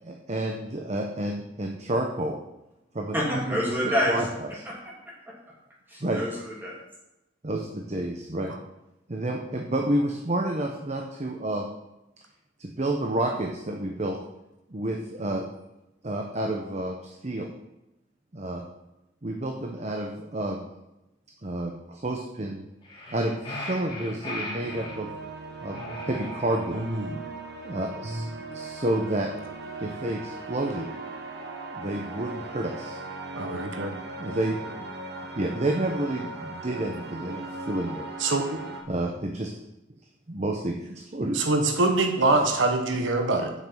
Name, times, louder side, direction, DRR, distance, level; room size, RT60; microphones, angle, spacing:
voice 1, 0.0-2.4 2.9-3.6 4.1-4.3 6.0-6.2 7.4-8.5 9.1-11.7 12.6-14.2 14.7-15.4 16.0-17.5 18.3-18.6 19.2-20.7 21.4-22.6 23.1-25.1 25.6-26.8 27.6-29.3 29.8-30.9 31.6-33.0 34.2-34.6 35.4-38.1 38.9-39.5 40.3-41.4, right 1 dB, 35° right, 2 dB, 0.9 m, -30 dB
voice 2, 3.1-4.2 4.6-4.7 5.9-6.8, equal, 10° right, -5 dB, 2.9 m, -27 dB
sound 1, 22.8-25.0 25.7-26.9, left 1 dB, 25° left, 2.7 m, -38 dB
sound 2, 24.6-38.8, right 3 dB, 60° right, 1.4 m, -39 dB
voice 3, 26.7-27.2 33.3-33.9 38.2-38.6 41.3-43.5, right 2 dB, 80° right, 4 dB, 1.2 m, -24 dB
7.5 x 5.9 x 7.6 m, 0.94 s
head